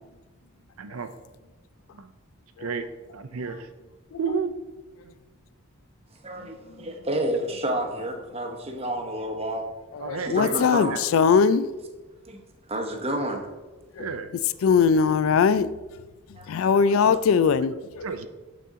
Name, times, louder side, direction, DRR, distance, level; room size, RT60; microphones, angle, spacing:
voice 1, 0.8-1.1 1.9-2.1 2.6-3.7 4.2-4.5 5.0-5.1 10.0-11.0 11.3-11.6 14.0-14.3 14.7-15.0 16.7-17.2 17.6-17.7 18.0-18.3, right 5 dB, 80° right, 0.5 m, -33 dB
voice 2, 6.2-9.7 10.2-11.0 12.3-12.4 12.7-13.5 16.4-16.5, right 1 dB, 25° right, 0.9 m, -30 dB
voice 3, 9.9-11.7 14.0-14.1 14.6-15.7 16.5-18.0, left 6 dB, 70° left, 0.3 m, -20 dB
11.0 x 4.2 x 3.7 m
head